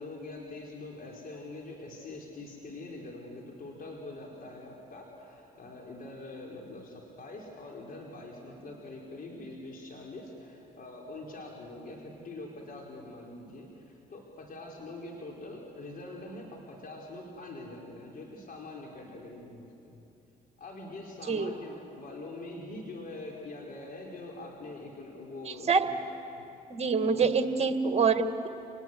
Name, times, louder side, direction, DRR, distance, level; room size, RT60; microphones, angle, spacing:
voice 1, 0.0-20.1 20.6-26.0 26.3-26.5 27.1-27.4, left 2 dB, 45° left, -1 dB, 4.7 m, -44 dB
voice 2, 26.7-28.5, right 5 dB, 30° right, 8 dB, 2.0 m, -25 dB
28.5 x 19.5 x 8.1 m, 2.8 s
hypercardioid pair, 55°, 20 cm